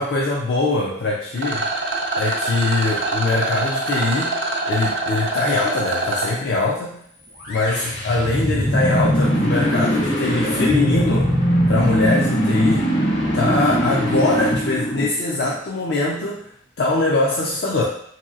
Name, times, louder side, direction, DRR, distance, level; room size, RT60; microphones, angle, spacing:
voice 1, 0.0-1.7 2.2-4.4 4.7-7.0 7.5-11.3 11.7-12.9 13.3-16.5 16.8-17.8, left 3 dB, 60° left, -4 dB, 0.4 m, -22 dB
Rattle, 1.4-6.3, right 2 dB, 75° right, 0.5 m, -24 dB
sound 1, 7.4-15.5, equal, 80° left, 0.9 m, -21 dB
3.0 x 2.8 x 2.4 m, 0.66 s
head